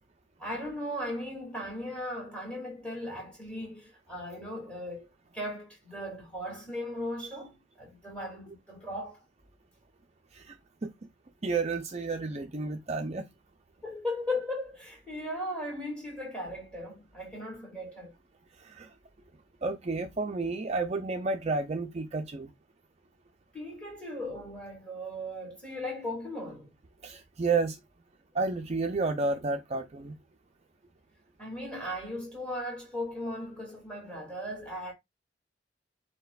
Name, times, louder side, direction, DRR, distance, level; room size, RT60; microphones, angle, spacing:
voice 1, 0.4-5.1 5.3-9.2 13.8-18.1 23.5-26.7 31.4-34.9, left 1 dB, 5° left, 2.2 m, -37 dB
voice 2, 11.4-13.3 18.6-18.9 19.6-22.5 27.0-27.8 28.3-30.2, right 3 dB, 35° right, 0.5 m, -31 dB
7.7 x 2.9 x 2.3 m
head